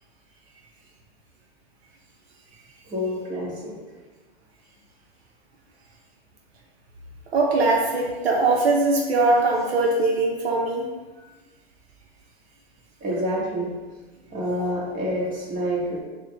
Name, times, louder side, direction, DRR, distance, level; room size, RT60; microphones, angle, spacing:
voice 1, 2.8-3.7 13.0-13.7 14.3-16.0, equal, 25° right, -5 dB, 1.4 m, -27 dB
voice 2, 7.3-10.9, right 3 dB, 85° right, -1 dB, 0.8 m, -21 dB
4.3 x 2.3 x 3.4 m, 1.3 s
hypercardioid pair, 115°, 31 cm